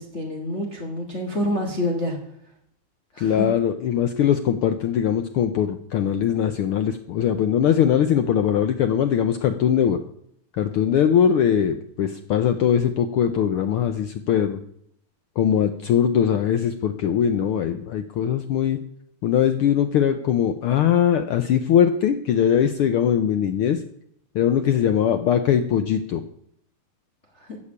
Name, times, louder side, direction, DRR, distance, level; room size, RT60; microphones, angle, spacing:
voice 1, 0.0-2.2 3.1-3.5 27.3-27.6, left 1 dB, 30° left, 0 dB, 1.7 m, -27 dB
voice 2, 3.2-10.0 10.6-14.6 15.4-18.8 19.2-23.8 24.3-26.2, left 9 dB, 80° left, 9 dB, 1.2 m, -21 dB
15.0 x 5.2 x 9.6 m, 0.70 s
omnidirectional pair, 3.3 m